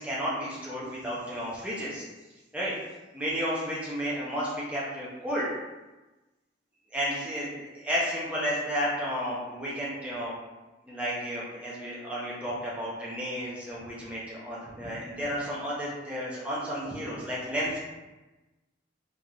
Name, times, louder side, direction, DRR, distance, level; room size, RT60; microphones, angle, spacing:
voice 1, 0.0-2.0 2.5-2.7 3.1-5.5 6.9-10.3 10.9-17.8, equal, 5° right, -7 dB, 0.5 m, -32 dB
3.1 x 2.6 x 2.3 m, 1.1 s
head